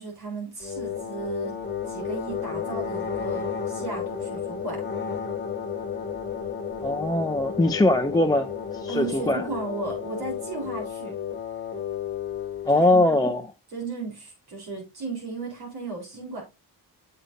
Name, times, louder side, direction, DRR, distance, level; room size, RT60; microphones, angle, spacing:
voice 1, 0.0-1.5 1.9-4.8 8.9-11.2 12.7-13.3 13.7-16.4, right 3 dB, 85° right, 3.9 m, -35 dB
sound 1, 0.6-12.8, left 7 dB, 25° left, 1.3 m, -32 dB
voice 2, 6.8-8.5 8.7-9.5 12.6-13.4, left 2 dB, 10° left, 0.5 m, -21 dB
7.6 x 6.6 x 2.7 m
cardioid pair, 80°, 38 cm